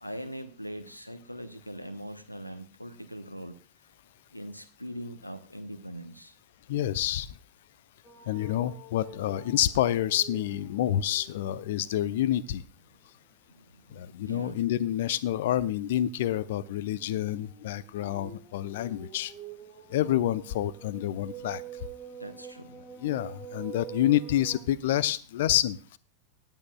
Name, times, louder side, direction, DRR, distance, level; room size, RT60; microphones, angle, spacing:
voice 1, 0.0-3.6 4.3-6.4 13.5-14.6 17.9-18.1 22.2-22.8, equal, 85° left, 12 dB, 0.8 m, -41 dB
voice 2, 6.7-7.3 8.3-12.6 13.9-19.3 19.9-21.6 23.0-26.0, left 12 dB, 55° left, 20 dB, 0.6 m, -28 dB
sound 1, 8.0-12.2 12.6-12.9 15.4-24.6, right 6 dB, 5° left, 3.4 m, -47 dB
18.5 x 9.0 x 2.3 m, 0.34 s
figure-of-eight pair, 90°, 0 cm